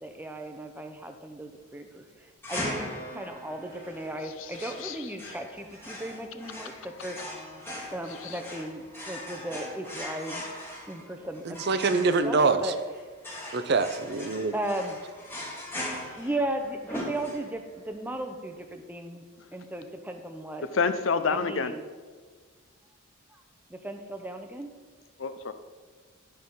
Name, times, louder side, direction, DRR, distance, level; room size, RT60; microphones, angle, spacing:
voice 1, 0.0-7.5 7.9-10.4 10.9-11.6 11.9-12.8 14.5-15.0 16.2-19.2 19.5-20.7 21.3-21.8 23.3-23.4 23.7-24.7, right 1 dB, 10° right, 6 dB, 0.6 m, -36 dB
sound 1, 2.4-17.8, left 1 dB, 10° left, 1.3 m, -40 dB
voice 2, 4.4-5.1 8.2-8.4 20.7-21.7 25.2-25.5, left 5 dB, 65° left, 10 dB, 0.5 m, -29 dB
voice 3, 11.4-12.7 13.5-14.5, right 4 dB, 50° right, 10 dB, 0.5 m, -25 dB
12.0 x 5.5 x 3.8 m, 1.5 s
head